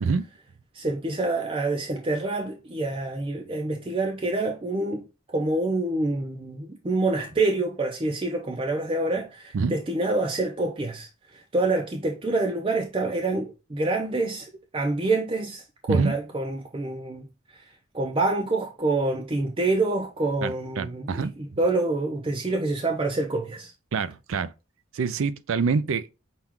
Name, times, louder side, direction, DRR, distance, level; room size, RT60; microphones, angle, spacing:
voice 1, 0.7-5.0 5.3-17.6 17.9-23.7, right 2 dB, 25° right, 0.5 m, -27 dB
voice 2, 20.4-21.3 23.9-24.5 24.9-26.1, right 5 dB, 85° right, 0.4 m, -26 dB
5.9 x 2.3 x 3.6 m
head